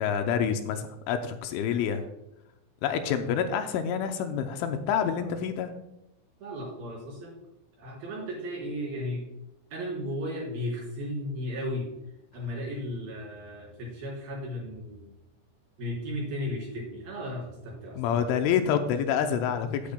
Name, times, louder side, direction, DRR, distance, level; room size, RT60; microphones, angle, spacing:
voice 1, 0.0-2.0 2.8-5.7 18.0-19.9, left 8 dB, 80° left, 7 dB, 3.0 m, -27 dB
voice 2, 5.0-5.3 6.4-7.3 7.8-9.2 9.7-11.9 12.3-15.0 15.8-18.3, left 1 dB, 50° right, -3 dB, 5.2 m, -35 dB
13.5 x 10.5 x 2.3 m, 0.89 s
omnidirectional pair, 5.9 m